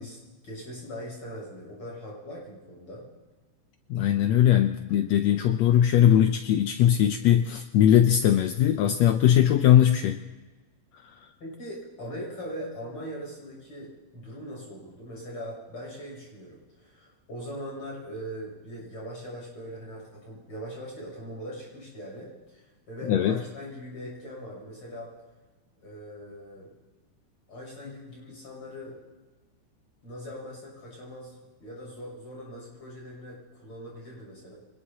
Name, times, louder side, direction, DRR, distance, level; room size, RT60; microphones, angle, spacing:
voice 1, 0.0-3.1 11.4-25.1 25.8-26.7 27.5-29.0 30.0-34.5, equal, 40° left, -3 dB, 7.8 m, -41 dB
voice 2, 3.9-10.2 10.9-11.3 23.1-23.4, left 10 dB, 80° left, 7 dB, 1.5 m, -20 dB
25.0 x 20.0 x 2.9 m, 1.3 s
omnidirectional pair, 3.7 m